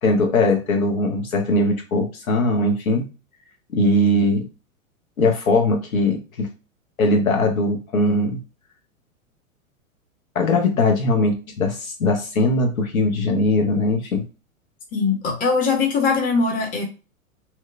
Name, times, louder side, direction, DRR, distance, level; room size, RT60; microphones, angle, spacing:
voice 1, 0.0-3.1 3.7-4.4 5.2-6.5 7.0-8.4 10.3-14.2, left 2 dB, 80° left, 3 dB, 0.9 m, -20 dB
voice 2, 14.9-16.8, left 4 dB, 20° left, 2 dB, 0.7 m, -21 dB
2.8 x 2.1 x 2.4 m, 0.32 s
figure-of-eight pair, 95°, 41 cm